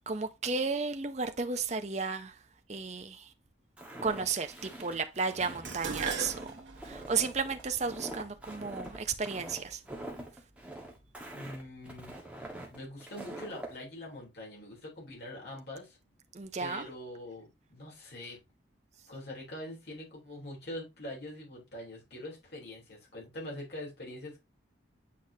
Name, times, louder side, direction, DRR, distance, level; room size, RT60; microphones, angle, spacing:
voice 1, 0.1-2.4 2.7-3.3 4.0-6.5 6.8-9.8 16.3-16.9, right 4 dB, 35° right, 0.7 m, -33 dB
Walk footsteps, 3.8-13.7, right 1 dB, 5° right, 1.5 m, -44 dB
Dishes pots and pans, 5.6-10.0 10.9-11.3 11.7-12.5 12.8-12.9, right 5 dB, 80° right, 1.5 m, -41 dB
voice 2, 11.3-12.2 12.7-16.0 16.6-18.4 19.1-24.4, left 1 dB, 55° left, 3.4 m, -44 dB
8.5 x 5.0 x 2.8 m
head